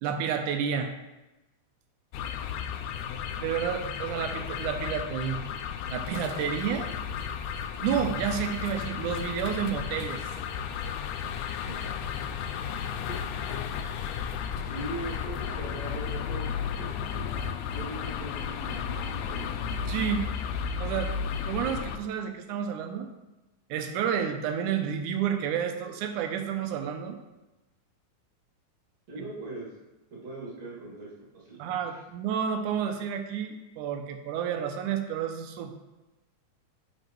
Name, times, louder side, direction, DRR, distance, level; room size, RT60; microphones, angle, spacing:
voice 1, 0.0-0.9 3.4-5.4 5.9-6.9 7.8-10.2 19.9-20.2 20.8-21.1 21.4-23.1 23.7-27.2 31.6-35.7, right 8 dB, 90° right, 6 dB, 2.2 m, -30 dB
sound 1, 2.1-22.0, left 7 dB, 80° left, 1.8 m, -33 dB
voice 2, 14.7-16.9 17.7-19.6 29.1-29.7 30.1-32.0, right 2 dB, 55° right, -6 dB, 3.5 m, -40 dB
9.9 x 5.3 x 3.1 m, 1.0 s
omnidirectional pair, 3.5 m